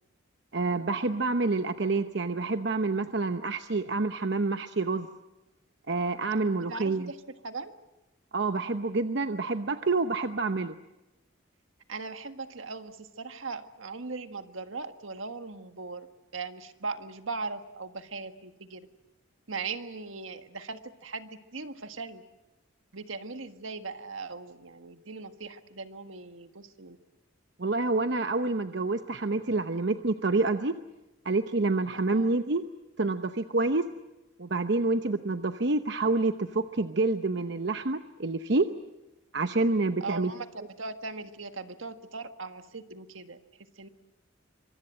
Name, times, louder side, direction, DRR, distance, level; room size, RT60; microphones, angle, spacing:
voice 1, 0.5-5.1 5.9-7.1 8.3-10.7 27.6-30.7 31.2-32.6 33.0-33.8 34.4-38.7 39.3-40.3, right 3 dB, 60° right, 9 dB, 0.9 m, -27 dB
voice 2, 6.7-7.7 11.9-18.9 19.5-22.2 22.9-27.0 32.1-32.4 40.0-43.9, right 4 dB, 80° right, 9 dB, 1.6 m, -39 dB
25.5 x 24.5 x 7.7 m, 1.0 s
head